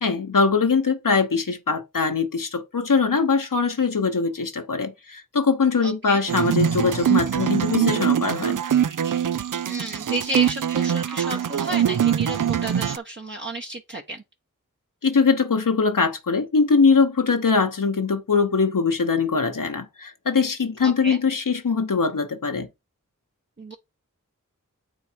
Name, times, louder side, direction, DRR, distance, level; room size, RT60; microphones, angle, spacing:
voice 1, 0.0-8.6 15.0-22.7, left 4 dB, 75° left, 1.1 m, -22 dB
voice 2, 5.8-6.2 9.6-14.2 20.8-21.2 23.6-23.7, right 1 dB, 35° right, 1.0 m, -32 dB
sound 1, 6.3-13.0, right 9 dB, 70° right, 0.5 m, -23 dB
8.5 x 4.6 x 4.5 m
wide cardioid pair, 50°, 33 cm